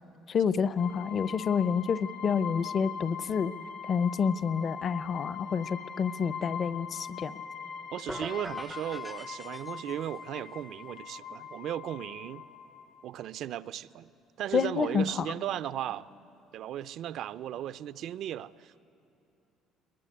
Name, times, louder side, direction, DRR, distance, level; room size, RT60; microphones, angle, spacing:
voice 1, 0.3-3.5 3.8-7.4 14.5-15.3, left 6 dB, 40° left, 15 dB, 0.6 m, -28 dB
sound 1, 0.8-13.2, left 7 dB, 55° left, 1.3 m, -41 dB
voice 2, 7.9-12.4 13.0-14.1 14.4-16.1 16.5-18.8, right 11 dB, 60° right, 15 dB, 0.5 m, -36 dB
sound 2, 8.1-10.2, equal, ahead, 0.5 m, -43 dB
22.0 x 21.5 x 9.9 m, 2.8 s
cardioid pair, 130°, 0 cm